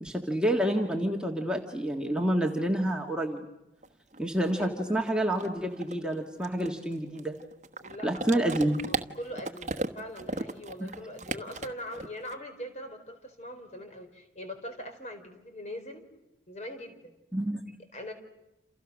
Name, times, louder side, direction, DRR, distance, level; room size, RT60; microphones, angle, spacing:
voice 1, 0.0-3.5 4.2-7.4 8.0-8.9 10.8-10.9 17.3-17.8, right 1 dB, 5° right, 0 dB, 1.7 m, -28 dB
sound 1, 3.8-3.9 4.1-12.3, right 2 dB, 40° right, 1.2 m, -36 dB
voice 2, 4.5-5.0 7.8-8.6 8.8-16.0 16.5-17.2 17.9-18.1, left 1 dB, 40° left, 6 dB, 4.5 m, -42 dB
29.0 x 29.0 x 6.3 m, 0.93 s
head